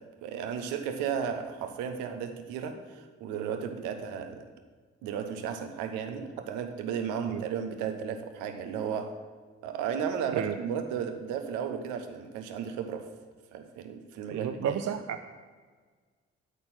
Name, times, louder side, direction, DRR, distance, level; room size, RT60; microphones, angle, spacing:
voice 1, 0.0-4.5 5.0-9.2 9.6-13.1 13.5-14.8, right 7 dB, 80° right, 7 dB, 0.9 m, -34 dB
voice 2, 14.3-15.3, right 9 dB, 55° right, 7 dB, 0.6 m, -32 dB
13.0 x 4.3 x 7.3 m, 1.5 s
hypercardioid pair, 40°, 30 cm